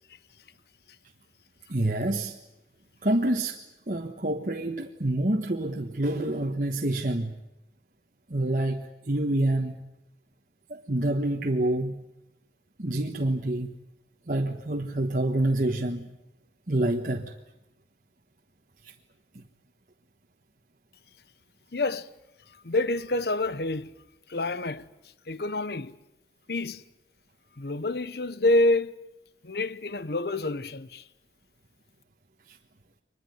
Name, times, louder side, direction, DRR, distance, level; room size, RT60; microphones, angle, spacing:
voice 1, 1.7-2.3 3.0-3.6 3.9-7.4 8.3-9.8 10.7-12.0 12.8-13.7 14.3-16.1 16.7-17.3 18.8-18.9 19.3-19.4 32.5-32.6, right 1 dB, 50° right, 1.4 m, -27 dB
voice 2, 21.7-22.1 22.6-23.9 24.3-24.9 25.3-26.0 26.5-26.8 27.6-29.0 29.4-31.0, left 2 dB, 65° left, 0.9 m, -27 dB
24.0 x 20.5 x 9.3 m
head